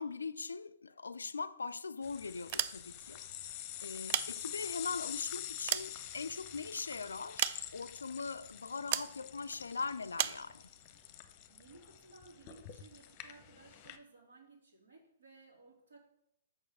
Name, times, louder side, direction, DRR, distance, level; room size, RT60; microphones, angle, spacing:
voice 1, 0.0-3.2 3.8-10.7, left 4 dB, 75° left, 0.4 m, -41 dB
sound 1, 2.0-14.0, left 11 dB, 35° left, 0.8 m, -46 dB
sound 2, 2.4-3.2 3.9-4.9 5.4-6.6 7.4-8.0 8.9-9.2 10.1-10.5, right 12 dB, 40° right, 0.4 m, -36 dB
voice 2, 11.5-16.0, right 3 dB, 70° right, 3.5 m, -58 dB
6.8 x 5.9 x 6.6 m
figure-of-eight pair, 120°, 0 cm